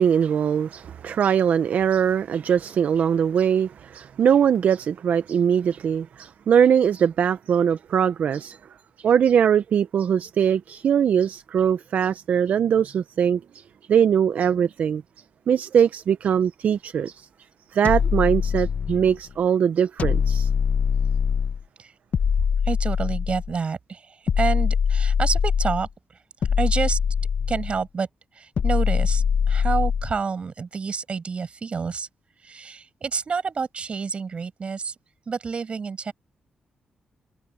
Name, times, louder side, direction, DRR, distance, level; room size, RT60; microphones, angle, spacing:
voice 1, 0.0-8.6 9.0-13.6 13.9-15.0 15.5-17.3 17.7-20.5, right 8 dB, 65° right, 0.5 m, -21 dB
sound 1, 17.8-19.2 20.0-21.6 22.1-23.5 24.3-25.9 26.4-27.8 28.6-30.2, left 6 dB, 55° left, 0.8 m, -23 dB
voice 2, 22.7-25.9 26.6-27.0 27.5-28.1 28.4-32.1 32.4-34.9 35.3-36.1, right 5 dB, 40° right, 5.7 m, -28 dB
cardioid pair, 110°, 3 cm